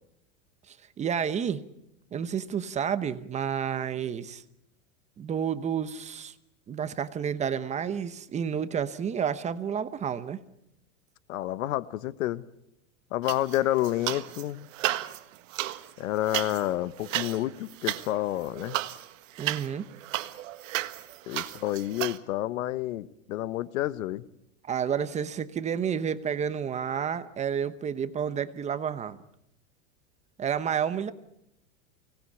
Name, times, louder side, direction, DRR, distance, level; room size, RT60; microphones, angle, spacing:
voice 1, 0.7-1.6 2.1-4.4 5.2-6.3 6.7-10.4 19.4-19.9 24.6-29.2 30.4-31.1, right 8 dB, 15° right, 13 dB, 0.9 m, -30 dB
voice 2, 11.3-12.4 13.1-14.7 16.0-18.8 21.3-24.2, left 14 dB, 80° left, 16 dB, 1.2 m, -29 dB
sound 1, 13.2-14.4 14.7-22.2, right 15 dB, 70° right, 1.6 m, -34 dB
24.5 x 19.0 x 8.5 m, 0.82 s
supercardioid pair, 150°, 39 cm